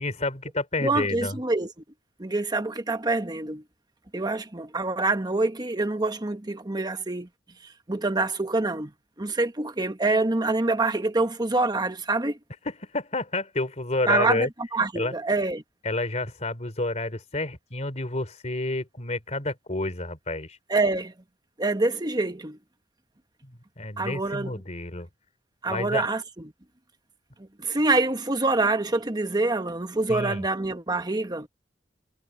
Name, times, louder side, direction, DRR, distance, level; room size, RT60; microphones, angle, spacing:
voice 1, 0.0-1.4 12.7-14.5 15.0-15.1 15.8-20.6 23.4-25.1 25.7-26.1 30.1-30.4, left 2 dB, 40° left, 3.7 m, -29 dB
voice 2, 0.8-1.7 2.2-3.6 4.1-7.3 7.9-8.9 9.2-12.4 14.1-15.6 20.7-21.1 21.6-22.6 24.0-24.6 25.6-26.2 27.4-31.5, right 2 dB, 25° right, 1.3 m, -26 dB
head